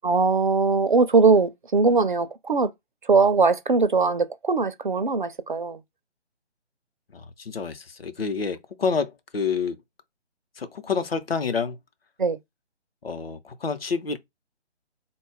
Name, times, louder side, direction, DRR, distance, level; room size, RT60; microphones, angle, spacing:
voice 1, 0.0-2.7 3.0-5.8 12.2-12.4, right 4 dB, 45° right, 0.4 m, -21 dB
voice 2, 7.1-9.8 10.6-11.8 13.0-14.2, left 5 dB, 60° left, 0.8 m, -28 dB
3.8 x 2.3 x 3.4 m
figure-of-eight pair, 145°, 34 cm